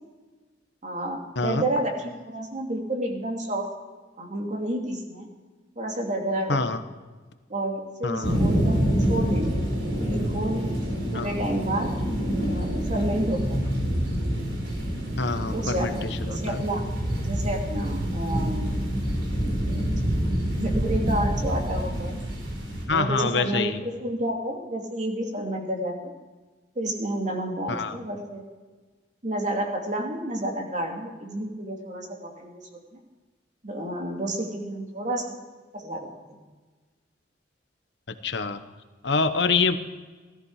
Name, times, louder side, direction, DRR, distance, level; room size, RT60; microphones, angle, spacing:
voice 1, 0.8-3.7 4.2-5.3 5.8-6.8 7.5-9.6 10.0-10.7 11.1-11.9 12.5-13.6 15.5-16.9 17.2-18.7 19.6-22.2 22.9-26.1 26.8-28.4 29.2-32.6 32.9-33.0 33.6-35.4 35.7-36.4, right 1 dB, 40° right, 1 dB, 2.6 m, -30 dB
voice 2, 6.5-6.8 8.0-8.4 11.1-11.3 15.2-16.6 22.9-23.8 27.7-28.0 38.1-38.6 39.0-39.8, left 4 dB, 65° left, 9 dB, 1.0 m, -26 dB
sound 1, 8.2-22.9, equal, 75° right, 4.4 m, -27 dB
16.5 x 14.0 x 4.8 m, 1.3 s
head